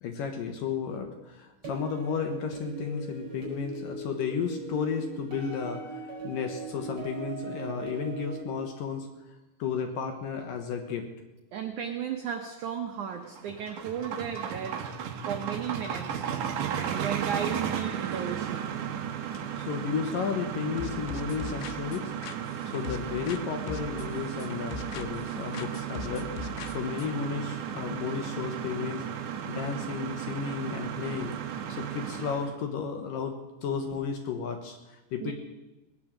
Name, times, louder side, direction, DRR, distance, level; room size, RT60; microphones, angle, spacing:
voice 1, 0.0-6.0 6.2-9.1 9.6-11.1 19.6-22.1 22.4-26.3 26.7-29.1 29.5-31.3 31.7-33.4 33.6-34.8 35.1-35.3, left 6 dB, 65° left, 4 dB, 2.4 m, -33 dB
sound 1, 1.6-8.4, right 3 dB, 40° right, 6.2 m, -40 dB
voice 2, 11.5-14.8 15.3-16.2 16.6-18.7 35.2-35.3, right 8 dB, 90° right, 4 dB, 1.7 m, -35 dB
sound 2, 13.1-32.5, right 9 dB, 65° right, 2.1 m, -35 dB
sound 3, 20.8-23.4 23.7-25.3 25.5-27.1, left 7 dB, 85° left, 3.1 m, -41 dB
19.0 x 9.6 x 7.4 m, 1.0 s
omnidirectional pair, 5.0 m